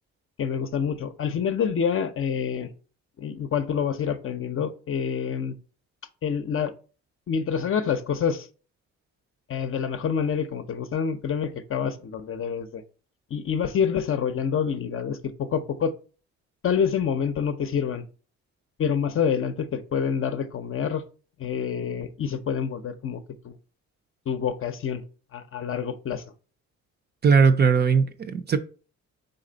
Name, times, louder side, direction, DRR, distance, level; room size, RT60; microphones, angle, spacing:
voice 1, 0.4-2.7 3.2-5.5 6.2-6.7 7.3-8.5 9.5-12.8 13.3-15.9 16.6-18.0 18.8-21.0 21.4-23.6 24.3-25.0 25.3-26.2, left 7 dB, 45° left, 0.6 m, -27 dB
voice 2, 27.2-28.6, right 5 dB, 35° right, 0.4 m, -19 dB
4.0 x 3.3 x 3.9 m
cardioid pair, 90°, 30 cm